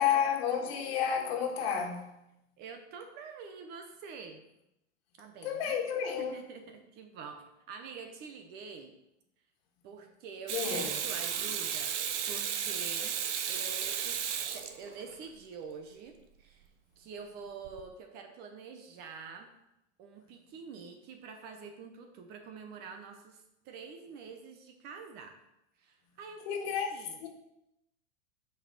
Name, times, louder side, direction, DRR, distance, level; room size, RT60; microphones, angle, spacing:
voice 1, 0.0-2.1 5.4-6.4 10.5-11.0 26.4-26.9 27.2-27.3, left 8 dB, 60° left, 1.6 m, -31 dB
voice 2, 2.6-4.4 5.2-5.8 6.2-8.9 9.8-12.0 12.3-13.1 13.5-14.2 14.5-16.7 17.0-19.5 20.0-25.3 25.8-27.2, right 5 dB, 30° right, 0.7 m, -46 dB
Water tap faucet / Sink (filling or washing), 10.5-15.2 17.7-17.8, right 8 dB, 80° right, 1.0 m, -34 dB
6.3 x 5.5 x 6.2 m
supercardioid pair, 165°, 35 cm